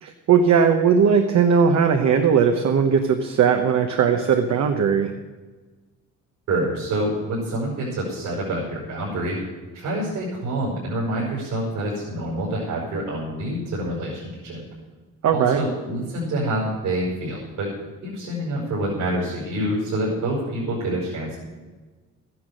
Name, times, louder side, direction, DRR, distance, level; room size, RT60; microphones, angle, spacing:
voice 1, 0.0-5.1 15.2-15.6, right 6 dB, 65° right, 5 dB, 1.1 m, -18 dB
voice 2, 6.5-9.4 9.7-14.6 15.3-17.7 18.0-21.3, right 1 dB, 80° right, -5 dB, 5.3 m, -27 dB
13.0 x 10.5 x 6.5 m, 1.3 s
cardioid pair, 90°, 30 cm